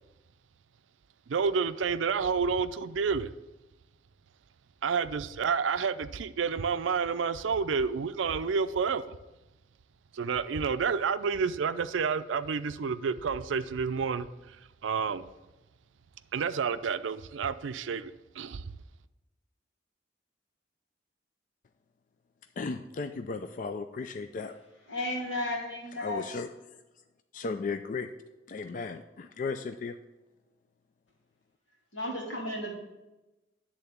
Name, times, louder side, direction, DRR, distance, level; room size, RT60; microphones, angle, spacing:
voice 1, 1.3-3.3 4.8-9.1 10.1-14.6 14.8-15.2 16.3-18.6, right 5 dB, 85° right, 12 dB, 0.4 m, -29 dB
voice 2, 22.6-24.5 25.9-26.5 27.3-28.1 28.5-30.0, left 4 dB, 45° left, 8 dB, 0.4 m, -35 dB
voice 3, 24.9-26.3 31.9-32.7, left 1 dB, 85° left, -2 dB, 2.3 m, -33 dB
10.0 x 3.8 x 6.9 m, 1.0 s
head